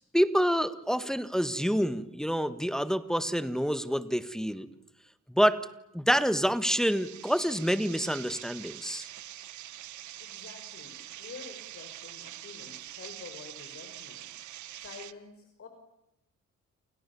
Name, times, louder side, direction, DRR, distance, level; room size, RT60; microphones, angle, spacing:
voice 1, 0.1-4.7 5.3-5.7 5.9-9.1, equal, ahead, 12 dB, 1.6 m, -27 dB
sound 1, 6.8-15.1, right 13 dB, 75° right, 1.1 m, -45 dB
voice 2, 10.2-14.3 14.8-15.7, left 5 dB, 50° left, 5 dB, 5.2 m, -48 dB
29.0 x 29.0 x 7.1 m, 0.87 s
cardioid pair, 90°, 30 cm